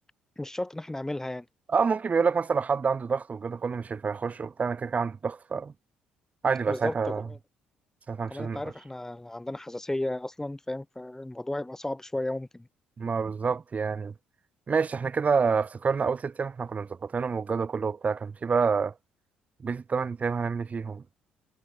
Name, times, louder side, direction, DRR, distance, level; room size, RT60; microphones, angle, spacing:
voice 1, 0.4-1.4 6.7-7.4 8.3-12.7, left 1 dB, 10° left, 6.9 m, -34 dB
voice 2, 1.7-5.7 6.4-7.3 8.1-8.6 13.0-14.1 14.7-18.9 19.6-21.0, right 5 dB, 35° right, 2.3 m, -28 dB
hypercardioid pair, 50°, 4 cm